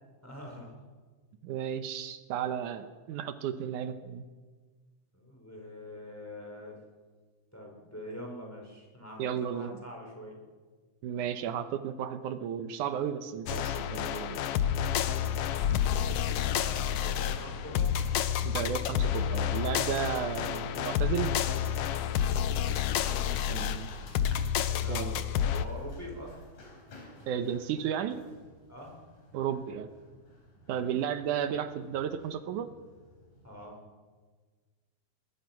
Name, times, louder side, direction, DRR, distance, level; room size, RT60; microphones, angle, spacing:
voice 1, 0.2-0.7 5.1-6.8 7.5-10.4 16.3-17.9 22.5-22.8 24.6-26.3 28.7-28.9 30.6-30.8 33.4-33.8, equal, 5° left, 0 dB, 4.6 m, -44 dB
voice 2, 1.4-4.2 9.2-9.7 11.0-14.4 18.4-21.4 23.5-23.9 24.9-25.2 27.3-28.2 29.3-29.9 30.7-32.7, right 9 dB, 85° right, 10 dB, 2.5 m, -33 dB
sound 1, 13.5-25.7, left 9 dB, 70° left, 1.5 m, -29 dB
Run, 16.3-33.6, left 2 dB, 85° left, 5.7 m, -54 dB
21.5 x 21.0 x 5.9 m, 1.4 s
omnidirectional pair, 3.5 m